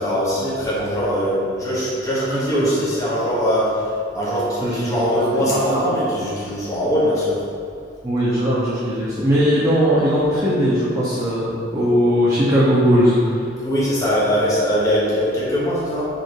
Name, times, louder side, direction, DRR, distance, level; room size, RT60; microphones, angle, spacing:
voice 1, 0.0-7.4 13.6-16.1, equal, 20° left, -8 dB, 1.3 m, -21 dB
voice 2, 2.3-2.7 4.6-4.9 5.3-5.8 8.0-13.4, equal, 20° right, -9 dB, 0.9 m, -19 dB
5.2 x 4.9 x 4.7 m, 2.3 s
head